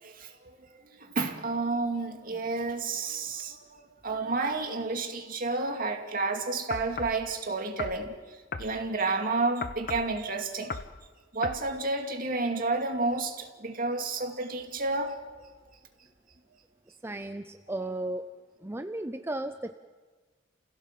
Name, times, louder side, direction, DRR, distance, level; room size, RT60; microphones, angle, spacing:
voice 1, 0.0-10.8 11.3-15.5, right 3 dB, 50° right, 2.5 m, -31 dB
sound 1, 6.7-7.2 7.8-8.0 8.5-8.7 9.6-10.1 10.7-10.9 11.4-11.6, left 4 dB, 50° left, 1.0 m, -36 dB
voice 2, 17.0-18.3 18.6-19.7, right 1 dB, 15° right, 0.6 m, -35 dB
30.0 x 16.5 x 7.5 m
head